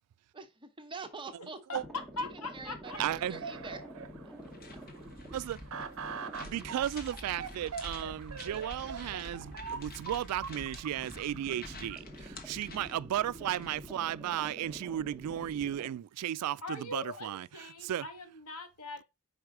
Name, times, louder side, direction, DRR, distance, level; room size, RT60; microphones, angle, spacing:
voice 1, 0.3-1.6 2.2-2.3 2.5-3.8 4.2-4.3, right 3 dB, 20° right, 0.9 m, -45 dB
sound 1, 1.7-15.9, equal, ahead, 1.1 m, -48 dB
voice 2, 2.2-3.0 16.6-19.0, left 2 dB, 80° left, 1.5 m, -41 dB
sound 2, 2.8-12.0, right 6 dB, 65° right, 0.7 m, -44 dB
voice 3, 3.0-3.4 5.3-5.6 6.4-17.5 17.8-18.0, right 11 dB, 85° right, 0.3 m, -35 dB
sound 3, 4.4-14.0, left 3 dB, 45° left, 1.2 m, -51 dB
4.9 x 4.8 x 4.6 m
head